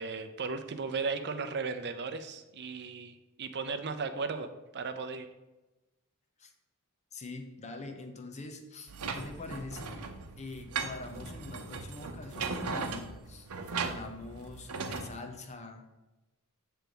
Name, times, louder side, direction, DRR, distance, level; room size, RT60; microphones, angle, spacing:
voice 1, 0.0-5.3, right 4 dB, 50° right, 9 dB, 0.6 m, -36 dB
voice 2, 7.1-10.1 10.4-16.0, left 3 dB, 30° left, 5 dB, 0.8 m, -44 dB
sound 1, 8.9-15.1, right 4 dB, 85° right, 0.8 m, -38 dB
8.1 x 3.4 x 6.0 m, 1.1 s
head